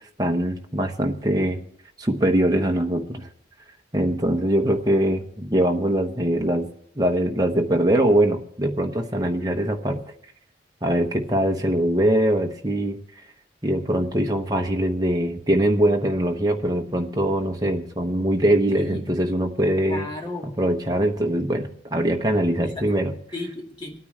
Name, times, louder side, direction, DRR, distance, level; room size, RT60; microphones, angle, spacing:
voice 1, 0.2-1.6 2.0-3.3 3.9-6.7 7.0-10.0 10.8-13.0 13.6-20.1 20.4-23.2, right 1 dB, 20° right, 3 dB, 1.0 m, -22 dB
voice 2, 18.7-19.0 19.9-20.5 22.6-22.8 23.3-24.0, left 1 dB, 25° left, 0 dB, 2.0 m, -34 dB
26.5 x 9.4 x 3.3 m, 0.67 s
head